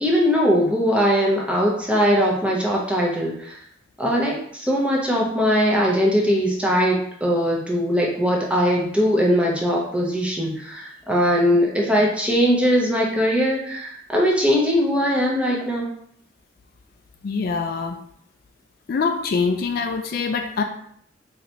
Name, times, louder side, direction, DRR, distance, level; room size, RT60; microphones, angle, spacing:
voice 1, 0.0-3.6 4.0-15.9, equal, 5° right, -3 dB, 0.7 m, -20 dB
voice 2, 17.2-18.0 18.9-20.6, left 4 dB, 55° left, 5 dB, 0.4 m, -24 dB
4.0 x 3.2 x 2.9 m, 0.66 s
head